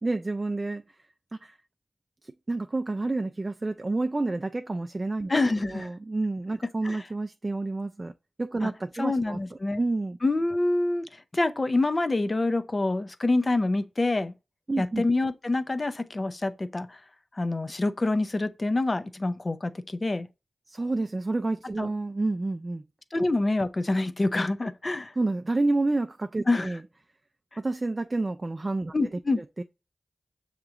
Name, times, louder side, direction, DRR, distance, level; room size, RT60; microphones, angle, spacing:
voice 1, 0.0-0.8 1.3-1.5 2.2-5.3 5.7-8.1 8.4-9.4 9.8-10.2 14.7-15.0 20.7-22.8 25.2-26.8 27.6-28.9 29.4-29.6, right 2 dB, 40° right, 0.3 m, -29 dB
voice 2, 5.3-5.9 6.8-7.0 8.6-8.7 9.0-9.8 10.2-14.3 14.8-17.0 17.3-20.3 21.8-21.9 23.1-25.1 26.5-26.7 28.9-29.4, left 2 dB, 40° left, 0.5 m, -26 dB
6.7 x 2.9 x 2.5 m
cardioid pair, 45°, 0 cm